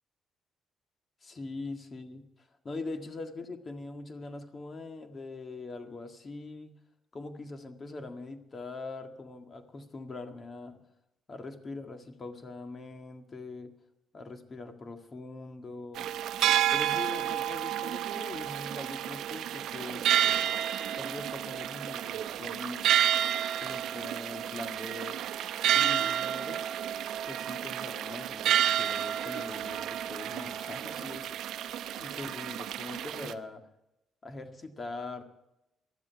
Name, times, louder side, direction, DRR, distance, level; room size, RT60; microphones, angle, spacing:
voice 1, 1.2-6.8 7.1-10.8 11.3-13.8 14.1-16.1 16.7-20.1 21.0-22.9 23.6-25.2 25.7-26.7 27.3-31.6 32.0-33.6 34.2-35.2, left 3 dB, 35° left, 7 dB, 1.8 m, -42 dB
sound 1, 16.0-33.3, right 10 dB, 80° right, 0.7 m, -30 dB
19.0 x 12.5 x 4.7 m, 0.92 s
cardioid pair, 90°, 0 cm